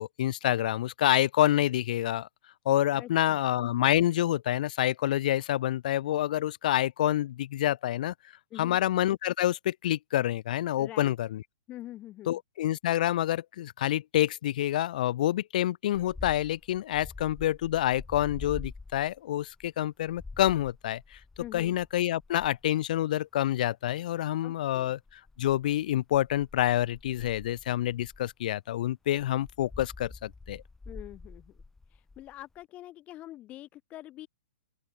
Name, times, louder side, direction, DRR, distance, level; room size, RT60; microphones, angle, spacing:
voice 1, 0.0-2.3 2.7-8.1 8.6-11.4 12.3-21.2 21.5-25.0 25.4-30.6, left 13 dB, 55° left, 2.3 m, -27 dB
voice 2, 2.9-3.4 8.5-8.8 10.8-11.1 11.7-12.4 21.4-21.8 30.9-31.6 31.9-34.3, left 14 dB, 25° left, 5.5 m, -45 dB
sound 1, 15.9-22.8 25.1-28.3 29.1-32.6, left 3 dB, 5° left, 5.3 m, -46 dB
open air
hypercardioid pair, 135°, 5 cm